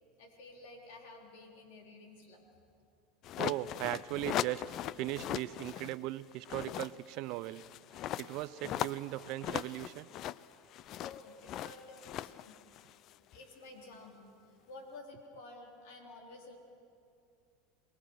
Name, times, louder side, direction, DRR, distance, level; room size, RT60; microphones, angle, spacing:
voice 1, 0.2-2.5 11.0-12.6 13.3-14.2 14.7-16.6, left 2 dB, 75° left, 2 dB, 4.0 m, -52 dB
sound 1, 3.2-6.0 6.3-13.4, left 12 dB, 50° left, 0.5 m, -39 dB
voice 2, 3.4-4.6 5.0-7.6 8.2-10.1, right 16 dB, 60° right, 17 dB, 0.6 m, -38 dB
27.0 x 20.0 x 6.4 m, 2.5 s
supercardioid pair, 110°, 0 cm